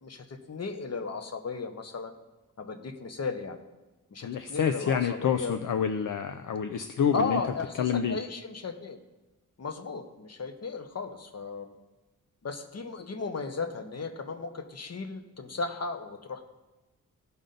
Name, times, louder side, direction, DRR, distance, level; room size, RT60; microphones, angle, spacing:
voice 1, 0.0-2.1 2.6-3.6 4.1-5.6 7.1-9.0 9.6-11.7 12.4-16.5, left 4 dB, 50° left, 7 dB, 0.9 m, -35 dB
voice 2, 4.2-7.4 7.8-8.2, left 7 dB, 65° left, 9 dB, 0.5 m, -28 dB
15.5 x 5.4 x 3.9 m, 1.1 s
wide cardioid pair, 110°, 34 cm